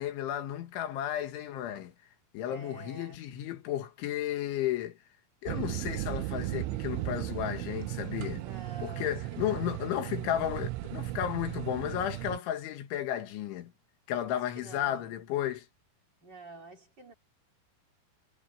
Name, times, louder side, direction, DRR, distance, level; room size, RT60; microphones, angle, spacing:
voice 1, 0.0-1.9 2.3-5.0 5.4-8.4 8.8-13.7 14.1-15.7, left 11 dB, 70° left, 4.1 m, -33 dB
voice 2, 2.4-3.2 8.4-9.8 14.2-15.1 16.2-17.1, right 3 dB, 25° right, 3.6 m, -48 dB
sound 1, 5.5-12.4, right 17 dB, 85° right, 2.8 m, -36 dB
omnidirectional pair, 5.7 m